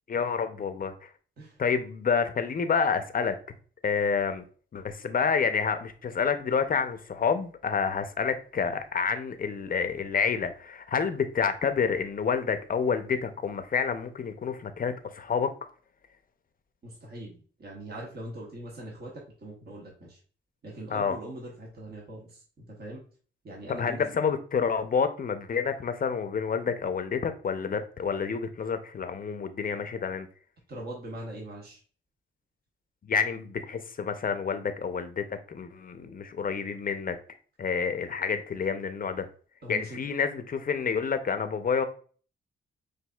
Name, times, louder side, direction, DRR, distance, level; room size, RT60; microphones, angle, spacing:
voice 1, 0.1-1.1 1.6-3.4 3.8-4.4 4.7-15.5 20.9-21.2 23.7-30.3 33.0-37.2 37.6-39.3 39.7-41.8, left 6 dB, 45° left, 0.6 m, -28 dB
voice 2, 16.8-17.3 17.6-20.2 20.6-23.0 23.4-24.1 30.7-31.8 39.6-40.0, right 1 dB, 50° right, 1.2 m, -41 dB
6.1 x 2.6 x 2.3 m
cardioid pair, 70°, 21 cm